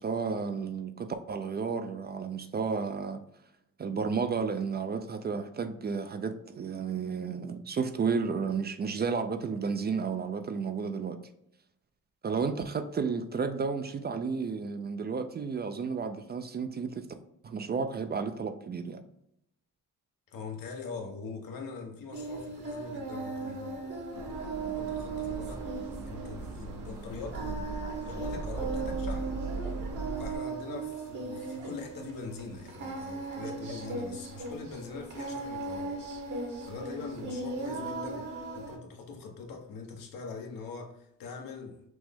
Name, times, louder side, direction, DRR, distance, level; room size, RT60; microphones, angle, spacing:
voice 1, 0.0-3.2 3.8-11.2 12.2-17.1 17.4-19.0, right 5 dB, 30° right, 0.4 m, -32 dB
voice 2, 20.3-23.9 24.7-29.4 30.2-36.0 36.7-41.9, left 4 dB, 85° left, 1.0 m, -43 dB
Singing, 22.1-38.8, right 3 dB, 60° right, 1.4 m, -38 dB
sound 1, 24.1-30.4, right 3 dB, 85° right, 0.9 m, -39 dB
6.1 x 2.1 x 3.5 m
cardioid pair, 105°, 33 cm